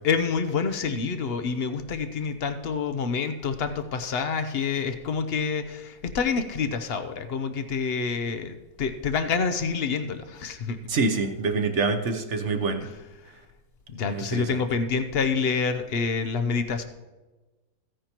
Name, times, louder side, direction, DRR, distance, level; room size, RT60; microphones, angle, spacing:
voice 1, 0.0-10.8 12.8-13.3 13.9-16.8, left 5 dB, 75° left, 9 dB, 0.5 m, -27 dB
voice 2, 10.9-12.8 14.1-14.4, right 4 dB, 50° right, 7 dB, 0.9 m, -26 dB
15.0 x 9.7 x 3.0 m, 1.2 s
omnidirectional pair, 1.9 m